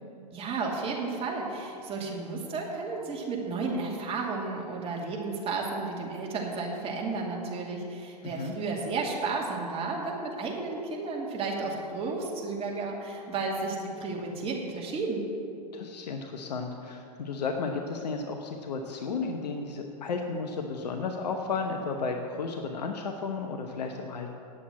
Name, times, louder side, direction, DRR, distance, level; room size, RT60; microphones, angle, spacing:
voice 1, 0.3-15.2, right 3 dB, 25° right, -2 dB, 2.5 m, -33 dB
voice 2, 8.2-8.5 15.7-24.3, left 4 dB, 80° left, 4 dB, 1.0 m, -33 dB
9.8 x 7.7 x 8.6 m, 2.6 s
hypercardioid pair, 105°, 21 cm